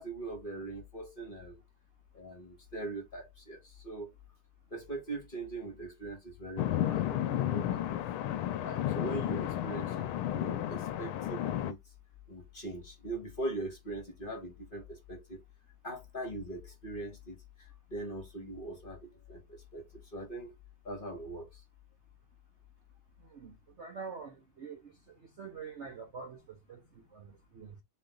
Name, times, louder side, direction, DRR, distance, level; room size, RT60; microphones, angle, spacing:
voice 1, 0.0-1.6 2.1-4.1 4.7-8.0 8.6-11.8 12.3-15.4 15.8-20.5 20.8-21.6, right 2 dB, 35° left, 1.0 m, -41 dB
sound 1, 6.6-11.7, left 12 dB, 80° left, 1.4 m, -32 dB
voice 2, 23.2-27.8, right 5 dB, 85° right, 0.6 m, -46 dB
4.1 x 3.2 x 3.8 m
omnidirectional pair, 2.4 m